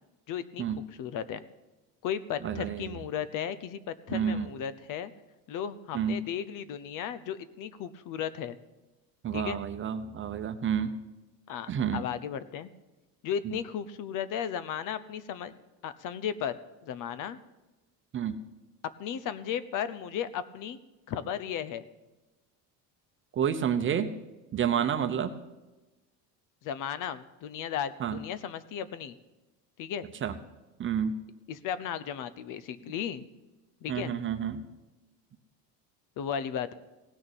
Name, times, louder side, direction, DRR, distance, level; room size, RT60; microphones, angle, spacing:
voice 1, 0.3-1.4 2.0-5.1 5.5-8.6 9.3-9.6 11.5-12.7 13.2-15.6 15.8-17.4 19.0-20.8 21.1-21.8 26.6-29.1 29.8-30.1 31.5-33.3 33.8-34.1 36.2-36.7, left 8 dB, 55° left, 15 dB, 0.9 m, -35 dB
voice 2, 2.4-2.9 4.1-4.5 5.9-6.2 9.2-10.9 11.7-12.0 13.4-13.6 18.1-18.4 23.4-24.1 24.5-25.3 28.0-28.2 30.2-30.3 30.8-31.2 33.9-34.6, right 8 dB, 30° right, 9 dB, 0.9 m, -29 dB
17.0 x 6.4 x 9.0 m, 1.1 s
cardioid pair, 145°, 37 cm